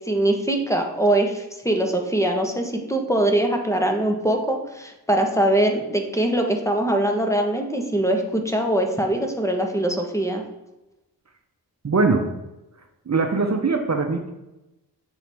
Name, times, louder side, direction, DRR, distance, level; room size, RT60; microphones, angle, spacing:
voice 1, 0.1-10.4, right 1 dB, 5° left, 3 dB, 1.1 m, -22 dB
voice 2, 11.8-12.2 13.1-14.3, right 3 dB, 40° right, 4 dB, 0.8 m, -21 dB
7.0 x 4.6 x 3.4 m, 0.95 s
cardioid pair, 45°, 42 cm